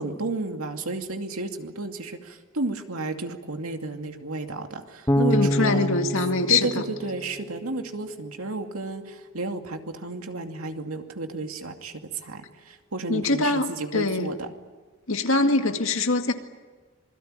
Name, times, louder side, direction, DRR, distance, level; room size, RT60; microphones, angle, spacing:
voice 1, 0.0-5.9 6.5-14.5, right 3 dB, 90° right, 5 dB, 2.5 m, -32 dB
Bass guitar, 5.1-8.1, left 1 dB, 15° left, 1.3 m, -27 dB
voice 2, 5.3-6.8 13.1-14.3 15.1-16.3, left 3 dB, 70° left, 6 dB, 2.1 m, -23 dB
26.5 x 21.5 x 9.1 m, 1.4 s
head